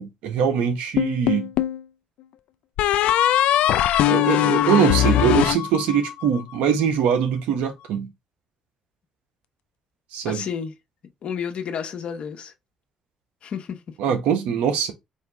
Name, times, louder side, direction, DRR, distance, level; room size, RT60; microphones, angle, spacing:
voice 1, 0.0-1.5 4.0-8.1 10.1-10.4 14.0-14.9, right 8 dB, 85° right, 1.1 m, -22 dB
sound 1, 1.0-1.8 2.8-6.3, left 12 dB, 80° left, 0.3 m, -20 dB
voice 2, 10.2-10.7 11.2-12.5 13.4-13.9, left 7 dB, 65° left, 1.0 m, -31 dB
4.6 x 2.8 x 3.4 m
supercardioid pair, 65°, 2 cm